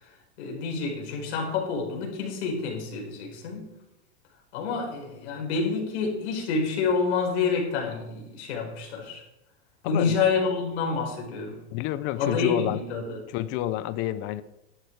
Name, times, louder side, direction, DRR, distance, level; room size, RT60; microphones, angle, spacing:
voice 1, 0.4-3.7 4.5-9.2 9.8-11.6 12.2-13.2, left 5 dB, 75° left, 4.9 m, -28 dB
voice 2, 9.8-10.2 11.7-12.8 13.3-14.4, left 13 dB, 35° left, 0.6 m, -29 dB
12.0 x 11.5 x 4.7 m
supercardioid pair, 160°, 34 cm